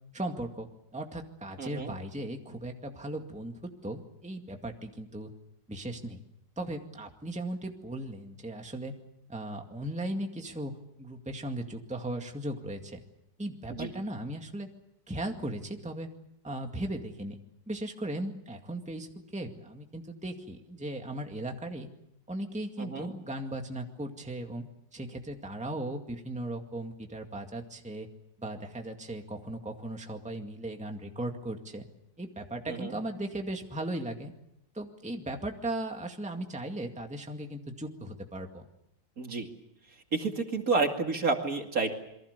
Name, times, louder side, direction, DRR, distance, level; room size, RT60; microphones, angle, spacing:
voice 1, 0.1-3.5 3.8-5.3 5.7-6.2 6.6-8.9 9.3-13.0 13.4-14.7 15.1-16.1 16.4-17.4 17.7-21.9 22.3-24.6 24.9-28.1 28.4-31.8 32.2-34.3 34.7-38.6, right 1 dB, 5° right, 3 dB, 2.0 m, -37 dB
voice 2, 1.6-1.9 13.7-13.9 22.8-23.1 32.7-33.0 39.2-39.5 40.1-41.9, right 4 dB, 50° right, 4 dB, 2.8 m, -30 dB
28.0 x 24.0 x 6.8 m, 0.81 s
omnidirectional pair, 2.0 m